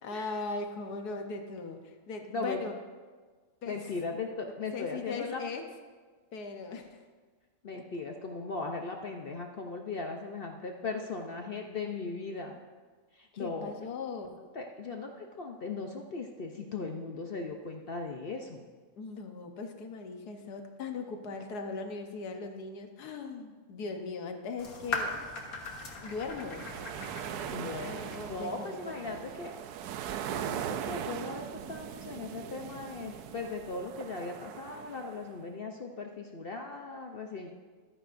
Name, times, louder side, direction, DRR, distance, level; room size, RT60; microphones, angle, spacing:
voice 1, 0.0-2.8 3.6-3.8 4.7-5.7 6.3-7.0 7.7-7.8 13.3-14.4 19.0-25.2 26.0-26.7 27.8-29.2, left 4 dB, 85° left, 5 dB, 1.6 m, -39 dB
voice 2, 2.3-2.6 3.7-5.4 7.6-12.6 13.1-13.7 14.5-18.6 27.5-29.5 30.3-37.5, left 3 dB, 50° left, 3 dB, 0.7 m, -38 dB
sound 1, 24.6-28.6, left 3 dB, 70° left, 1.7 m, -39 dB
sound 2, 26.0-35.3, right 9 dB, 80° right, 1.1 m, -40 dB
14.0 x 12.0 x 2.6 m, 1.4 s
omnidirectional pair, 1.7 m